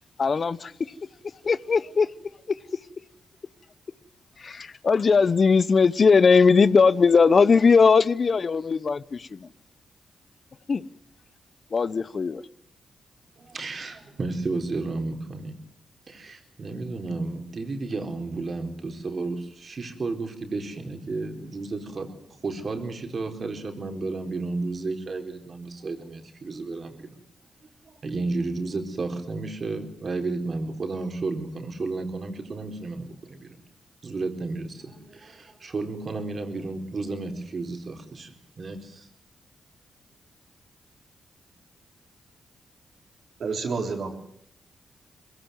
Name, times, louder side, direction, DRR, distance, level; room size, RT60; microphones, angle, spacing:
voice 1, 0.2-0.7 1.4-2.1 2.5-2.6 4.4-9.5 10.7-10.8 11.7-12.4, left 5 dB, 55° left, 0.8 m, -19 dB
voice 2, 13.4-15.6 16.1-22.2 22.4-27.2 27.9-33.6 34.0-39.1, right 3 dB, 55° right, 4.2 m, -32 dB
voice 3, 43.4-44.2, right 4 dB, 70° right, 4.0 m, -29 dB
22.0 x 16.5 x 9.4 m
supercardioid pair, 45°, 0 cm